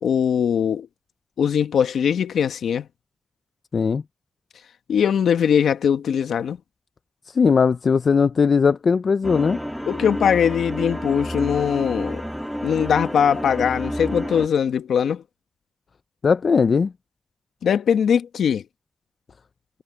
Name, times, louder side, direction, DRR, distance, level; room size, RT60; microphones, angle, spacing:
voice 1, 0.0-0.9 1.4-2.9 4.9-6.6 9.9-12.2 12.6-15.2 17.6-18.6, left 8 dB, 85° left, 1.4 m, -21 dB
voice 2, 7.3-9.6 16.2-16.9, left 5 dB, 65° left, 0.6 m, -19 dB
sound 1, 9.2-14.5, equal, ahead, 2.3 m, -30 dB
supercardioid pair, 40°, 0 cm